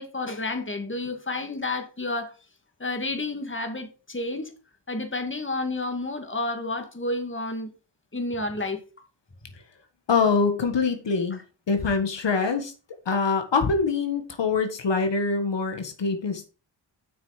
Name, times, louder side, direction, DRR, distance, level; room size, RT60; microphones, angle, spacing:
voice 1, 0.0-2.3 2.8-4.5 4.9-7.7 8.1-8.8, left 2 dB, 25° left, 2.1 m, -30 dB
voice 2, 10.1-11.4 11.7-12.7 13.0-16.5, left 4 dB, 75° left, 1.6 m, -24 dB
8.0 x 6.3 x 5.0 m
cardioid pair, 60°, 44 cm